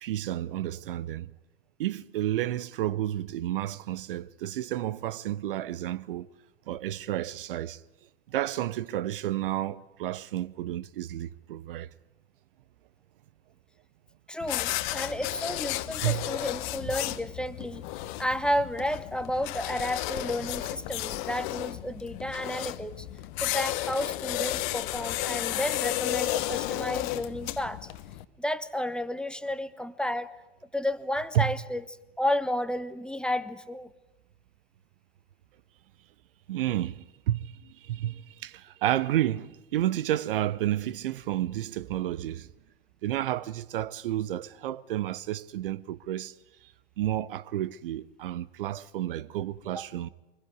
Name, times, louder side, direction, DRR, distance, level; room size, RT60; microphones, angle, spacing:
voice 1, 0.0-1.3 1.8-6.3 6.7-7.8 8.3-11.9 16.0-16.2 31.3-31.5 36.5-37.4 37.8-42.5 43.0-46.3 47.0-50.1, right 13 dB, 65° right, 0.8 m, -31 dB
voice 2, 14.3-17.8 18.2-23.1 23.4-27.8 28.4-30.3 30.7-31.8 32.2-33.9 49.7-49.9, left 1 dB, 5° left, 1.1 m, -32 dB
sound 1, 14.4-28.2, left 17 dB, 55° left, 1.1 m, -33 dB
24.0 x 21.0 x 9.5 m
figure-of-eight pair, 85°, 30 cm